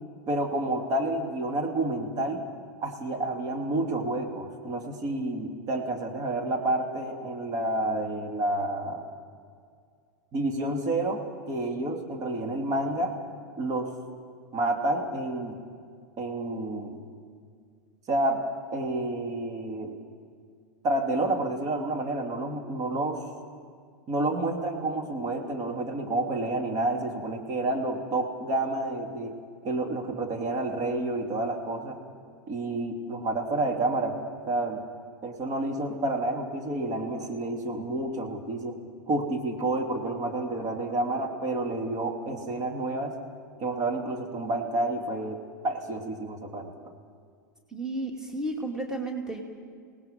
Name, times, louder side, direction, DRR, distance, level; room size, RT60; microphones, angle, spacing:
voice 1, 0.3-2.4 2.8-9.0 10.3-13.2 13.6-13.9 14.5-15.6 16.2-17.0 18.1-18.4 18.7-19.9 20.8-23.2 24.1-29.4 29.6-32.0 32.5-34.2 34.5-34.8 35.2-38.8 39.1-43.2 43.6-46.7, right 2 dB, 35° right, 3 dB, 2.6 m, -29 dB
voice 2, 47.7-49.4, right 2 dB, 5° right, 3 dB, 2.5 m, -32 dB
27.0 x 18.5 x 5.3 m, 2.1 s
figure-of-eight pair, 90°, 10 cm